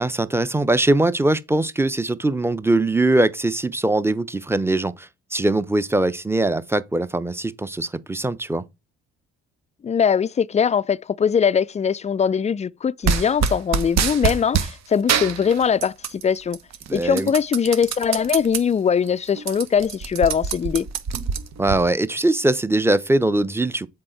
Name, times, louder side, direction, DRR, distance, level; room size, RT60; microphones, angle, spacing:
voice 1, 0.0-8.6 16.9-17.3 21.6-23.9, right 2 dB, 10° right, 0.8 m, -21 dB
voice 2, 9.8-16.6 16.9-20.9, left 7 dB, 20° left, 0.4 m, -21 dB
sound 1, 13.0-14.7 15.1-16.2 16.5-18.6 19.0-19.1 19.4-21.8, right 6 dB, 55° right, 1.2 m, -24 dB
7.6 x 4.1 x 4.5 m
hypercardioid pair, 50°, 32 cm